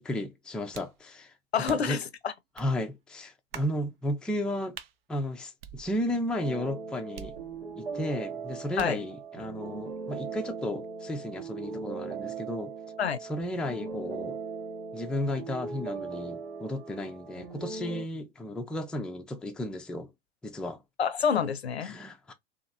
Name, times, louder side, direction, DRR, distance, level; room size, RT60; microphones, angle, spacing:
voice 1, 0.0-1.3 1.7-2.0 2.6-4.8 5.1-7.4 7.7-12.7 13.3-14.4 14.9-20.1 20.4-20.8 21.8-22.3, left 1 dB, 5° left, 0.3 m, -34 dB
sound 1, 0.7-1.0 1.7-2.0 2.6-2.7 3.5-3.8 4.7-4.9 5.6-6.3 7.2-7.8 8.8-9.1, right 9 dB, 65° right, 0.6 m, -45 dB
voice 2, 1.5-2.3 8.8-9.0 13.0-13.2 21.0-22.0, left 7 dB, 85° left, 0.5 m, -27 dB
sound 2, 6.4-18.1, right 5 dB, 85° right, 1.1 m, -39 dB
2.8 x 2.6 x 2.6 m
figure-of-eight pair, 85°, 31 cm